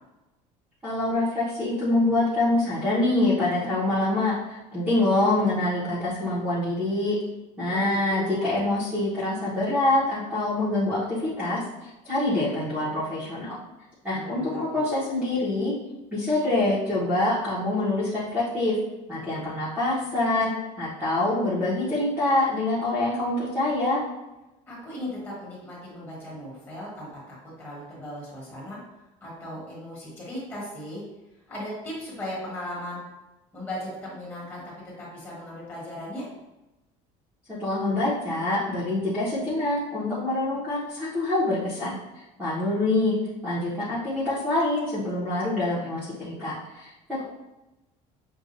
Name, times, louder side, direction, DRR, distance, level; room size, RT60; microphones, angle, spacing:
voice 1, 0.8-7.2 7.6-13.6 14.0-15.7 16.1-18.8 19.1-20.5 20.8-24.0 37.5-43.1 43.4-47.2, left 2 dB, 5° right, -11 dB, 1.0 m, -25 dB
voice 2, 7.7-8.6 14.1-14.8 24.7-28.8 29.2-31.0 31.5-33.0 33.5-36.3, left 1 dB, 15° left, -7 dB, 1.5 m, -37 dB
6.4 x 2.5 x 2.6 m, 1.0 s
cardioid pair, 175°, 14 cm